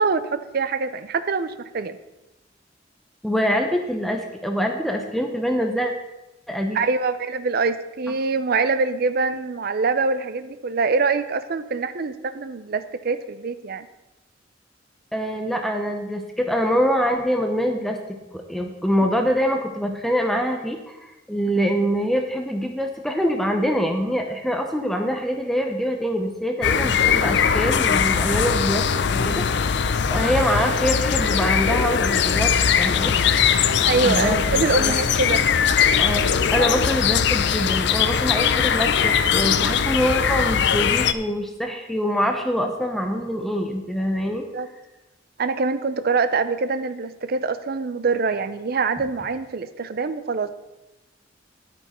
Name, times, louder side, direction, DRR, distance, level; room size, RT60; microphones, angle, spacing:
voice 1, 0.0-2.0 6.7-13.9 33.8-35.5 44.5-44.7 45.4-50.5, right 4 dB, 55° right, 12 dB, 0.5 m, -24 dB
voice 2, 3.2-5.9 6.5-6.8 15.1-28.8 29.1-29.4 30.1-33.1 34.0-34.4 34.8-34.9 36.0-44.4, equal, ahead, 3 dB, 0.8 m, -24 dB
sound 1, 26.6-41.1, left 7 dB, 65° left, 0.5 m, -20 dB
10.5 x 9.2 x 4.3 m, 0.97 s
head